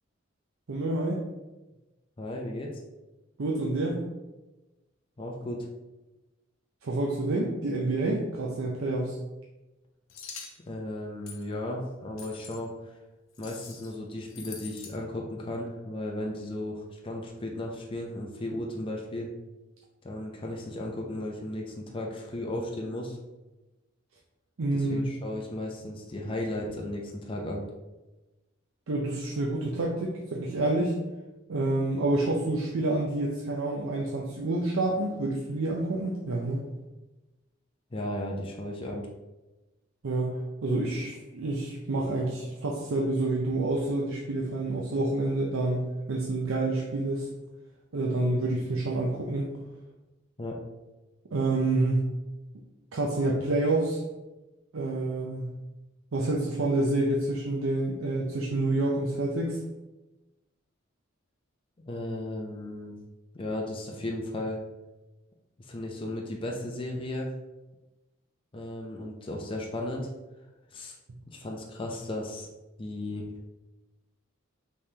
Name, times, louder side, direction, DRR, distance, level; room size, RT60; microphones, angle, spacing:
voice 1, 0.7-1.2 3.4-4.0 6.8-9.2 24.6-25.1 28.9-31.0 31.5-36.6 40.0-47.3 47.9-49.5 51.3-52.0 52.9-54.0 54.7-55.6 56.1-59.6, right 2 dB, 85° right, -2 dB, 0.6 m, -28 dB
voice 2, 2.2-2.7 5.2-5.7 10.7-12.7 13.4-19.3 20.0-23.2 24.7-27.6 37.9-39.1 50.4-50.6 61.9-62.9 63.3-64.6 65.6-67.3 68.5-70.1 70.7-70.9 71.3-72.5 72.8-73.3, left 1 dB, 25° left, 0 dB, 0.5 m, -35 dB
sound 1, 10.1-10.6 11.3-11.5 12.2-12.6 13.3-13.9 14.3-14.9, left 6 dB, 80° left, 0.7 m, -44 dB
5.3 x 3.3 x 2.8 m, 1.1 s
head